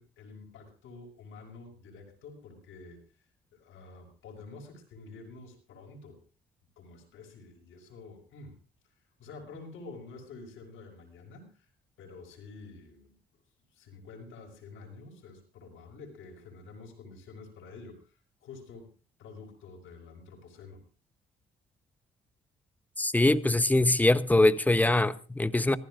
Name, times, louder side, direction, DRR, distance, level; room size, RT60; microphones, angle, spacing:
voice 1, 0.0-3.0 3.5-6.2 6.8-8.6 9.2-11.7 12.0-13.1 13.7-18.9 19.2-20.8, left 3 dB, 90° left, 5.5 m, -48 dB
voice 2, 23.0-25.8, left 2 dB, 10° left, 0.9 m, -23 dB
26.0 x 15.0 x 2.5 m
cardioid pair, 90°, 20 cm